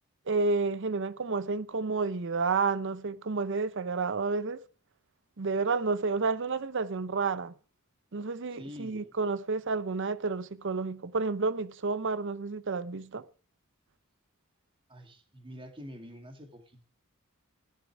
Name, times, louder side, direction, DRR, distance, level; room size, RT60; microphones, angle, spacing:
voice 1, 0.3-4.6 5.4-7.5 8.1-13.2, right 4 dB, 60° right, 0.7 m, -30 dB
voice 2, 8.5-9.2 14.9-16.8, equal, 25° right, 2.4 m, -46 dB
14.0 x 11.5 x 4.7 m
head